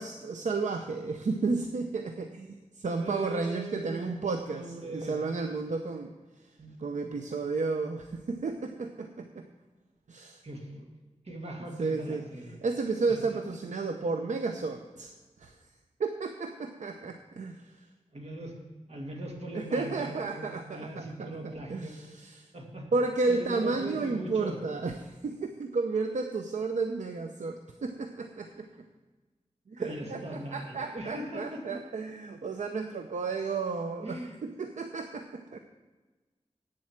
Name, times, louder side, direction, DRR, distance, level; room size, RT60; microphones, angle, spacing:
voice 1, 0.0-4.6 4.9-6.1 6.8-9.4 10.1-10.4 11.8-12.2 12.6-15.1 15.4-15.5 16.0-17.7 19.5-21.3 21.7-22.5 22.9-28.7 29.7-35.6, right 3 dB, 80° right, 6 dB, 0.7 m, -32 dB
voice 2, 3.0-4.1 4.5-5.2 6.6-7.1 10.4-10.9 11.2-12.7 13.1-13.4 18.1-18.5 18.9-22.0 22.5-22.9 23.3-24.6 29.8-31.8 34.0-34.4, right 1 dB, 60° right, 0 dB, 2.3 m, -40 dB
8.6 x 7.6 x 7.3 m, 1.3 s
wide cardioid pair, 95°, 12 cm